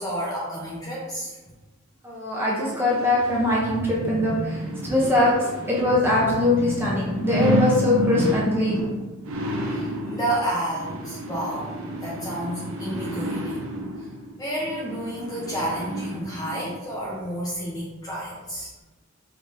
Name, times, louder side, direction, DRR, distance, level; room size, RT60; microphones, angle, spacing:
voice 1, 0.0-1.4 9.4-13.7 14.0-14.1 14.4-18.8, right 1 dB, 15° left, -6 dB, 0.6 m, -31 dB
voice 2, 2.0-5.3 5.7-8.8, left 1 dB, 10° right, -6 dB, 0.8 m, -22 dB
sound 1, 2.8-16.7 17.2-17.3, equal, 85° right, 0.7 m, -30 dB
5.0 x 3.4 x 2.7 m, 1.2 s
head